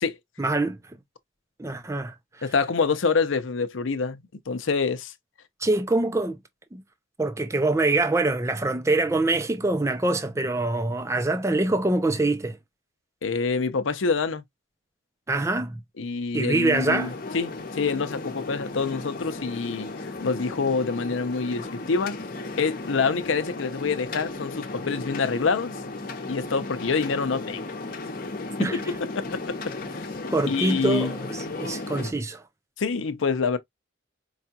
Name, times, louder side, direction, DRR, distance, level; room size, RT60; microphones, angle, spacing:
voice 1, 0.4-0.8 1.6-2.5 5.6-6.4 6.7-6.8 7.2-12.6 15.3-15.8 16.3-17.1 28.6-28.8 30.3-32.4, right 2 dB, 15° right, 0.4 m, -24 dB
voice 2, 2.4-5.1 13.2-14.4 16.0-22.2 22.6-25.7 26.3-27.6 28.6-28.7 29.2-29.3 29.9-30.1 30.5-31.1 32.8-33.6, left 4 dB, 90° left, 0.6 m, -26 dB
sound 1, 16.7-32.1, left 2 dB, 45° left, 0.8 m, -35 dB
4.7 x 2.3 x 2.8 m
head